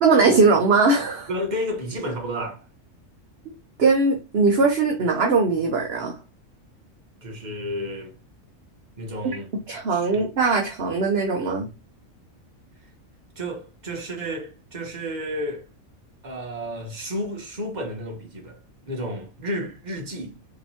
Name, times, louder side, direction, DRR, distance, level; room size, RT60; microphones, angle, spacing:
voice 1, 0.0-1.3 3.8-6.1 9.7-11.7, right 4 dB, 55° right, 1.0 m, -20 dB
voice 2, 1.3-2.7 7.2-8.1 9.0-9.5 9.9-10.2 13.3-15.7 16.2-18.6 18.9-20.3, equal, 35° right, 1.4 m, -31 dB
5.2 x 3.5 x 2.9 m
omnidirectional pair, 1.4 m